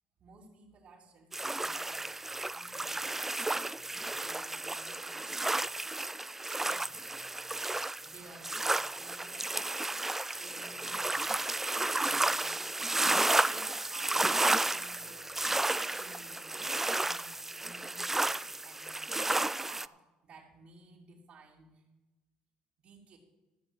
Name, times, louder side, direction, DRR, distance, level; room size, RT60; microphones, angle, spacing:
voice 1, 0.2-2.0 2.5-3.2 4.2-5.7 6.4-7.1 8.0-9.7 10.4-11.2 11.9-16.6 16.9-19.1 19.6-21.8 22.8-23.2, right 3 dB, 50° right, -7 dB, 2.8 m, -56 dB
sound 1, 1.3-19.9, right 2 dB, 10° right, 0.3 m, -32 dB
14.0 x 6.0 x 8.0 m, 1.1 s
supercardioid pair, 95°, 3 cm